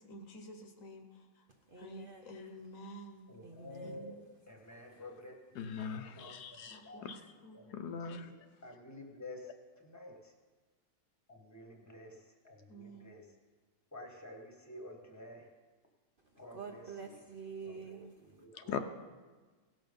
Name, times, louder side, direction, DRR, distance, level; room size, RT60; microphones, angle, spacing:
voice 1, 0.0-1.5 1.8-3.3 3.8-4.3 6.6-7.1 7.4-7.7 12.7-13.1, equal, 60° left, 1.3 m, -51 dB
voice 2, 1.5-2.4 3.4-4.1 4.6-5.0 16.2-18.4, right 5 dB, 45° right, 0.8 m, -48 dB
voice 3, 3.3-4.2 4.5-6.3 6.8-7.0 7.6-7.7 8.1-8.3 8.6-9.5 9.8-10.3 11.3-13.3 13.9-15.5 16.3-16.8 17.6-18.0 18.4-18.8, left 1 dB, 10° left, 1.2 m, -50 dB
voice 4, 5.5-7.3 7.7-8.5 18.5-18.8, left 7 dB, 80° left, 1.3 m, -41 dB
17.0 x 6.3 x 5.2 m
omnidirectional pair, 1.7 m